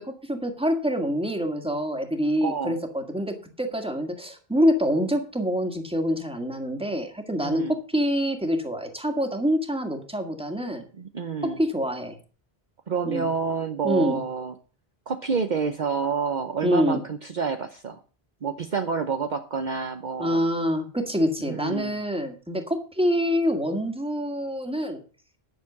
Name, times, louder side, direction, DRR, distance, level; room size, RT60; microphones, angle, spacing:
voice 1, 0.0-7.6 7.9-10.9 11.6-12.2 13.0-13.3 13.8-14.2 16.6-17.0 20.2-25.0, equal, 5° right, 5 dB, 1.9 m, -26 dB
voice 2, 2.4-2.8 7.4-7.8 11.0-11.6 12.9-14.5 15.1-18.0 18.4-20.4 21.5-22.0, right 5 dB, 50° right, 7 dB, 0.9 m, -28 dB
11.0 x 6.7 x 7.2 m, 0.39 s
omnidirectional pair, 1.1 m